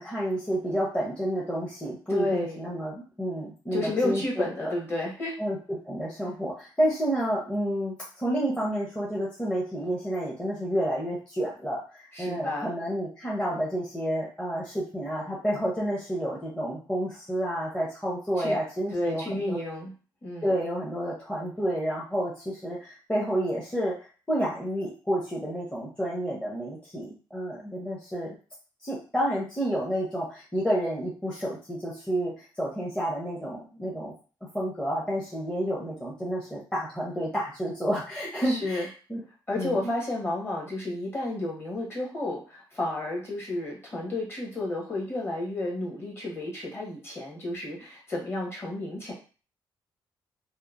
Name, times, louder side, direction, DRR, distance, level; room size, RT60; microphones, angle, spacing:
voice 1, 0.0-4.7 5.4-19.6 20.4-28.4 28.8-34.1 34.5-39.2 39.5-39.9, equal, 10° left, -6 dB, 0.7 m, -30 dB
voice 2, 2.1-2.6 3.7-5.3 12.1-12.7 18.4-18.6 18.9-19.9 20.2-20.5 38.4-38.9 39.5-49.1, left 2 dB, 30° left, -3 dB, 1.1 m, -31 dB
2.8 x 2.1 x 2.4 m, 0.36 s
cardioid pair, 135°, 8 cm